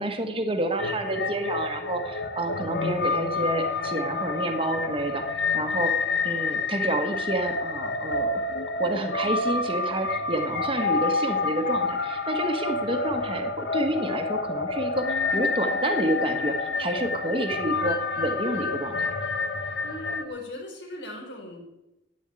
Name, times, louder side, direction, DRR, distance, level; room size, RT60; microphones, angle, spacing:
voice 1, 0.0-5.9 6.2-8.4 8.8-19.1, right 1 dB, 30° right, 5 dB, 1.5 m, -29 dB
sound 1, 0.8-20.2, left 3 dB, 70° left, 1.3 m, -28 dB
voice 2, 19.8-21.6, left 1 dB, 85° left, 1 dB, 4.3 m, -38 dB
11.0 x 9.1 x 9.1 m, 0.95 s
head